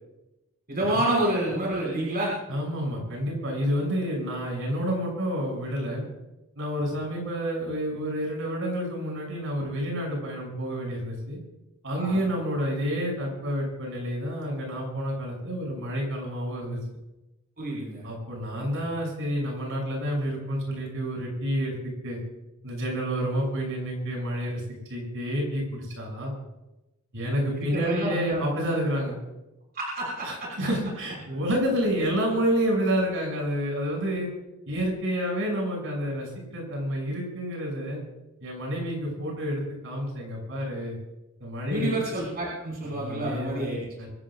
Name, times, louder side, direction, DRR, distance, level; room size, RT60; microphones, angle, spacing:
voice 1, 0.7-2.3 12.0-12.2 17.6-18.0 27.5-28.4 29.7-30.3 41.7-43.8, right 1 dB, 45° right, -4 dB, 6.1 m, -28 dB
voice 2, 2.5-6.1 6.6-11.4 11.8-16.8 18.0-21.8 22.0-22.2 22.6-24.6 24.9-26.3 27.1-29.2 30.2-34.3 34.7-38.0 38.4-41.0 41.4-41.9 42.8-43.6 44.0-44.1, equal, 65° right, -1 dB, 7.6 m, -29 dB
25.0 x 17.0 x 2.6 m, 0.97 s
head